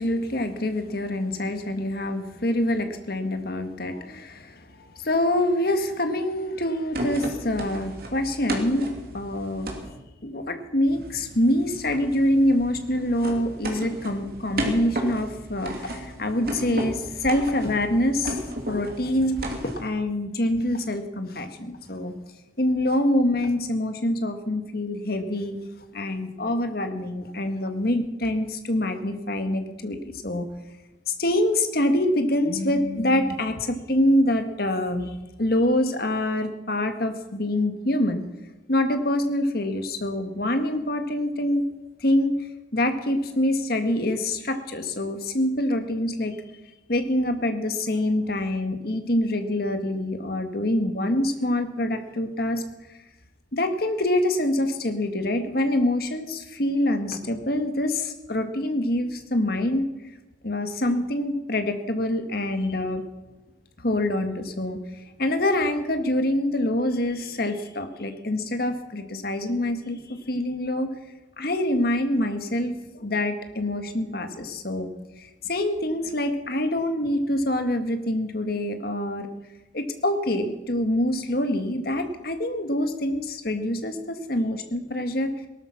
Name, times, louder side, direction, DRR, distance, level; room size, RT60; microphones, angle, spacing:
voice 1, 0.0-9.7 10.2-18.4 18.7-22.1 22.6-25.6 25.9-30.4 31.1-35.1 35.4-38.2 38.7-41.6 42.0-42.4 42.7-46.3 46.9-52.6 53.5-59.8 60.4-63.0 63.8-64.8 65.2-70.9 71.4-74.9 75.2-79.3 79.7-85.3, left 1 dB, 55° left, 7 dB, 1.6 m, -25 dB
sound 1, 6.9-9.9 10.9-19.9, equal, 55° right, 2.9 m, -34 dB
18.5 x 12.5 x 6.0 m, 1.1 s
head